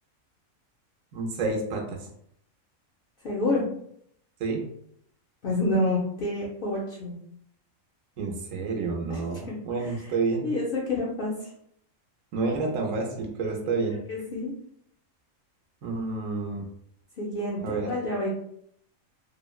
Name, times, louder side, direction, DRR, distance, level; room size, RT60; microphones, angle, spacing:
voice 1, 1.1-2.0 4.4-4.6 8.2-10.5 12.3-14.0 15.8-16.7 17.6-17.9, right 3 dB, 75° right, 1 dB, 1.0 m, -29 dB
voice 2, 3.2-3.6 5.4-7.2 9.1-9.2 9.5-9.9 10.4-11.3 14.1-14.5 17.2-18.3, left 2 dB, 60° left, -4 dB, 0.6 m, -28 dB
3.1 x 2.0 x 2.3 m, 0.69 s
omnidirectional pair, 1.4 m